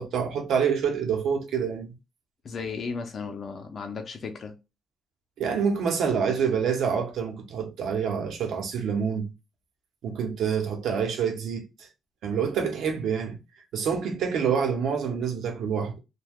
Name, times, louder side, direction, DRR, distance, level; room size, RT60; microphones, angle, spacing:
voice 1, 0.0-1.9 5.4-9.3 10.0-11.6 12.2-13.4 13.7-16.0, right 6 dB, 75° right, 0.8 m, -27 dB
voice 2, 2.4-4.5, left 5 dB, 50° left, 0.6 m, -35 dB
2.7 x 2.3 x 3.5 m
cardioid pair, 90°, 0 cm